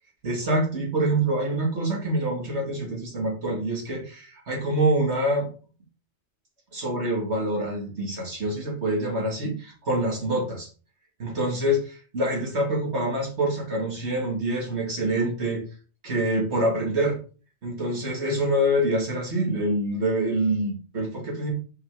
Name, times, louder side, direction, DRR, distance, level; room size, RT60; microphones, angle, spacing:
voice 1, 0.2-5.5 6.7-10.7 11.2-15.6 16.0-17.2 17.6-21.5, right 1 dB, 75° right, 0 dB, 2.4 m, -26 dB
6.2 x 4.8 x 3.7 m, 0.37 s
omnidirectional pair, 1.2 m